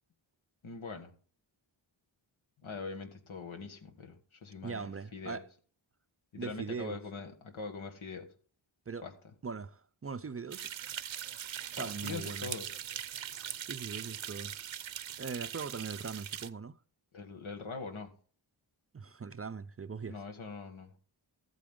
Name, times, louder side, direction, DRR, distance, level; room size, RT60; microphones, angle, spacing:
voice 1, 0.6-1.1 2.6-5.4 6.3-8.3 9.0-9.1 11.8-12.7 17.1-18.1 20.1-20.9, left 4 dB, 85° left, 1.8 m, -42 dB
voice 2, 4.6-5.5 6.4-7.0 8.9-9.0 9.4-10.7 11.8-12.5 13.6-14.5 15.2-16.8 18.9-20.2, right 5 dB, 30° right, 0.5 m, -40 dB
sound 1, 10.5-16.5, right 10 dB, 70° right, 0.7 m, -41 dB
14.0 x 8.5 x 3.7 m
wide cardioid pair, 80°, 47 cm